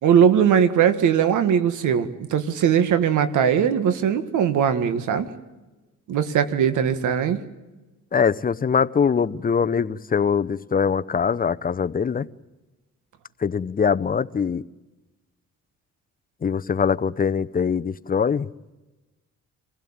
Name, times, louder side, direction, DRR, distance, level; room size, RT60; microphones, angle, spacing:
voice 1, 0.0-5.3 6.1-7.4, right 8 dB, 80° right, 11 dB, 1.8 m, -20 dB
voice 2, 8.1-12.3 13.4-14.6 16.4-18.5, left 6 dB, 30° left, 13 dB, 0.8 m, -22 dB
26.0 x 16.0 x 8.8 m, 1.1 s
cardioid pair, 90°, 30 cm